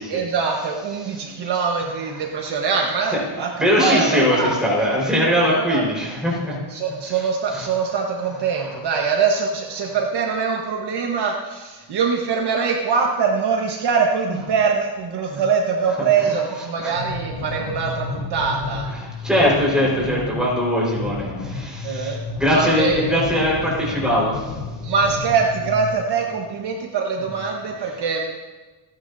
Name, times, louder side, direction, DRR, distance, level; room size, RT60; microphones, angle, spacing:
voice 1, 0.1-4.6 5.4-5.8 6.7-18.9 21.8-22.2 22.5-23.2 24.8-28.3, right 5 dB, 50° right, 1 dB, 1.4 m, -23 dB
voice 2, 3.6-6.6 7.5-7.6 8.6-8.7 15.3-15.4 16.0-16.1 16.8-17.0 18.9-24.5, equal, ahead, -5 dB, 4.7 m, -21 dB
sound 1, 16.9-25.9, left 3 dB, 75° left, 4.1 m, -31 dB
27.5 x 10.0 x 2.8 m, 1.2 s
cardioid pair, 170°, 50 cm